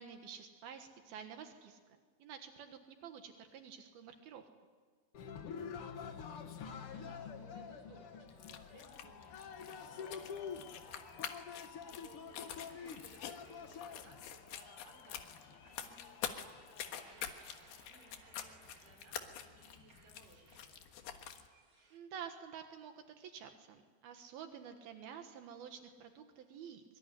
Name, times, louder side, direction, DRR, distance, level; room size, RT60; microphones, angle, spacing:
voice 1, 0.0-4.5 21.9-26.8, right 7 dB, 80° right, 6 dB, 3.3 m, -50 dB
Cheering, 5.1-17.1, left 6 dB, 65° left, 1.4 m, -48 dB
voice 2, 5.9-21.2, right 2 dB, 60° right, 3 dB, 6.3 m, -62 dB
sound 1, 8.3-21.5, left 9 dB, 85° left, 3.4 m, -48 dB
sound 2, 12.3-22.0, right 3 dB, 35° right, 3.2 m, -65 dB
24.0 x 24.0 x 10.0 m, 1.5 s
omnidirectional pair, 4.3 m